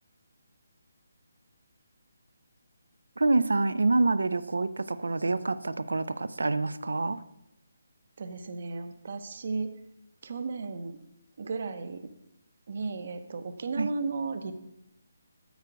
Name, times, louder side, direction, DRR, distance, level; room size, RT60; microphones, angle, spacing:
voice 1, 3.2-7.2 13.8-13.9, right 3 dB, 90° right, 15 dB, 0.4 m, -26 dB
voice 2, 8.2-9.7 10.2-11.0 11.4-12.1 12.7-14.5, right 4 dB, 55° right, 9 dB, 0.7 m, -34 dB
8.2 x 4.5 x 5.0 m, 0.84 s
hypercardioid pair, 160°, 0 cm